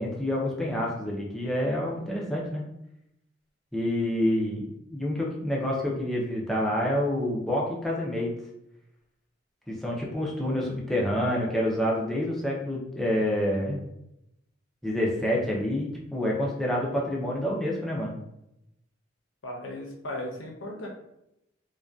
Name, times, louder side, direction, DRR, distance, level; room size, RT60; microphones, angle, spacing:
voice 1, 0.0-2.6 3.7-4.6 4.9-8.3 9.7-13.8 14.8-18.2, left 1 dB, ahead, -4 dB, 0.4 m, -28 dB
voice 2, 19.4-20.9, left 1 dB, 80° left, -1 dB, 0.6 m, -36 dB
2.5 x 2.2 x 2.2 m, 0.83 s
head